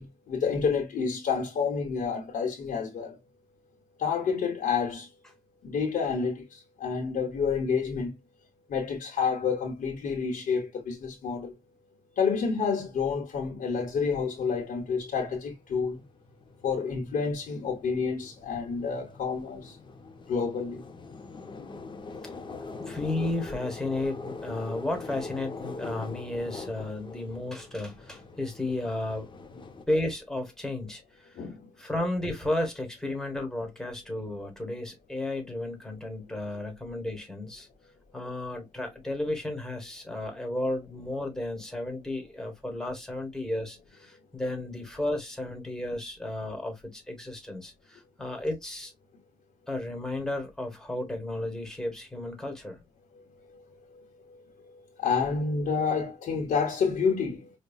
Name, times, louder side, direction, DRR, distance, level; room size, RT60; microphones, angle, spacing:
voice 1, 0.0-3.2 4.0-5.1 5.6-8.1 8.7-11.5 12.2-16.0 16.6-19.8 20.3-20.8 31.3-31.7 53.1-53.2 53.5-53.6 53.9-57.5, left 5 dB, 65° left, 1.1 m, -29 dB
sound 1, 14.4-14.5 14.9-29.8, left 3 dB, 30° left, 0.7 m, -43 dB
voice 2, 22.7-29.3 29.9-31.5 31.8-37.7 38.1-48.9 49.7-52.8, left 1 dB, 5° left, 1.2 m, -33 dB
5.2 x 2.3 x 2.3 m
cardioid pair, 135°, 15 cm